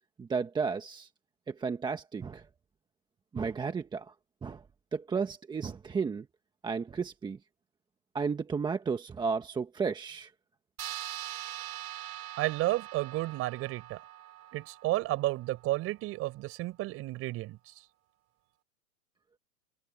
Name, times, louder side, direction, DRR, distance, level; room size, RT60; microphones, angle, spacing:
voice 1, 0.2-1.1 1.5-2.5 3.3-4.1 4.4-4.6 4.9-6.3 6.6-7.4 8.1-10.3, right 5 dB, 10° right, 1.4 m, -33 dB
sound 1, 10.8-15.7, right 13 dB, 75° right, 4.0 m, -43 dB
voice 2, 12.4-14.0 14.5-17.7, right 18 dB, 30° right, 4.8 m, -32 dB
hypercardioid pair, 140°, 42 cm